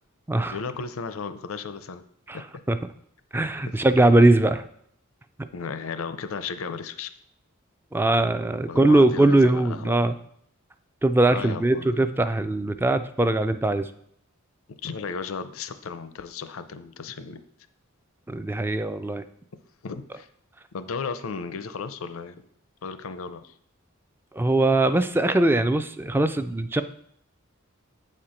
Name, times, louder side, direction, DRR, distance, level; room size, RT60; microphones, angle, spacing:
voice 1, 0.5-2.0 2.3-2.4 3.7-3.8 5.5-7.1 8.7-10.1 11.3-12.0 14.8-17.4 19.8-20.3 20.7-22.4 22.8-23.5, left 5 dB, 75° left, 11 dB, 0.6 m, -35 dB
voice 2, 3.3-4.6 7.9-10.1 11.0-13.9 18.3-19.2 24.3-26.8, right 2 dB, 10° right, 10 dB, 0.3 m, -21 dB
8.0 x 4.4 x 5.0 m, 0.68 s
head